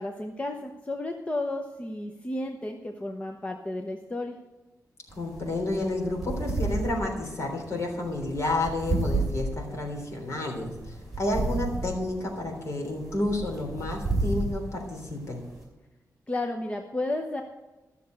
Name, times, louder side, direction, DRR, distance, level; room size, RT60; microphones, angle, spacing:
voice 1, 0.0-4.4 16.3-17.4, left 2 dB, 20° left, 3 dB, 0.9 m, -32 dB
voice 2, 5.1-15.5, left 1 dB, 50° left, 0 dB, 3.5 m, -30 dB
sound 1, 5.1-15.6, right 2 dB, 5° right, 4.9 m, -32 dB
14.0 x 6.9 x 6.5 m, 1.1 s
wide cardioid pair, 150°, 6 cm